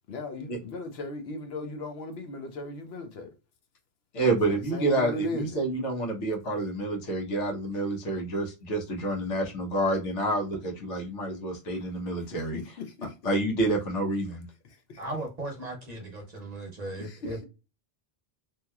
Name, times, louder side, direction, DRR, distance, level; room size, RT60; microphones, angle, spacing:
voice 1, 0.1-3.3 4.4-5.6 12.2-13.2 14.6-15.0 17.0-17.4, left 2 dB, 65° left, 0.9 m, -37 dB
voice 2, 4.1-12.6 13.2-14.4, right 2 dB, 85° left, 1.3 m, -28 dB
voice 3, 15.0-17.4, right 1 dB, 40° right, 0.8 m, -37 dB
2.9 x 2.7 x 2.3 m
omnidirectional pair, 1.2 m